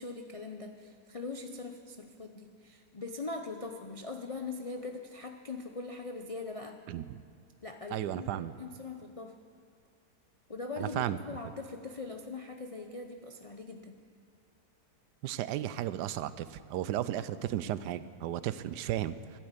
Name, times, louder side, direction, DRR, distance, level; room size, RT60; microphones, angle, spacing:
voice 1, 0.0-6.8 7.6-9.4 10.5-13.9 18.5-18.6, left 3 dB, 65° left, 4 dB, 0.3 m, -41 dB
voice 2, 6.9-7.2 7.9-8.5 10.8-11.2 15.2-19.2, right 12 dB, 90° right, 15 dB, 1.2 m, -34 dB
13.0 x 12.0 x 8.2 m, 2.2 s
omnidirectional pair, 1.7 m